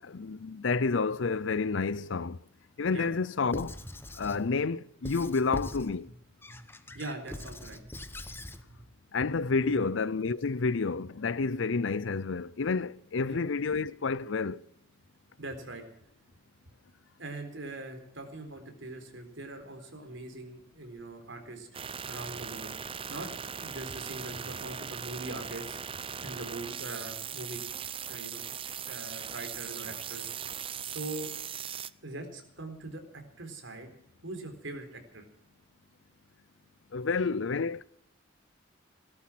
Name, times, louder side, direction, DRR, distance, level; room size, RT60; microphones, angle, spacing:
voice 1, 0.0-2.4 2.8-3.8 4.2-6.1 9.1-14.6 36.9-37.8, left 4 dB, 70° left, 0.6 m, -29 dB
Squeak / Writing, 3.5-4.4 5.0-5.9 6.4-8.6, left 1 dB, 10° left, 0.9 m, -41 dB
voice 2, 6.9-7.9 8.2-8.4 8.7-8.8 9.2-9.3 9.6-9.9 13.2-13.4 15.4-15.8 17.2-21.7 22.1-22.7 23.1-25.8 26.2-27.6 28.1-28.4 28.8-30.3 30.8-31.3 32.0-33.9 34.2-35.2, right 2 dB, 70° right, 4.0 m, -42 dB
sound 1, 21.7-31.9, right 8 dB, 25° right, 0.5 m, -39 dB
18.5 x 12.5 x 6.2 m
head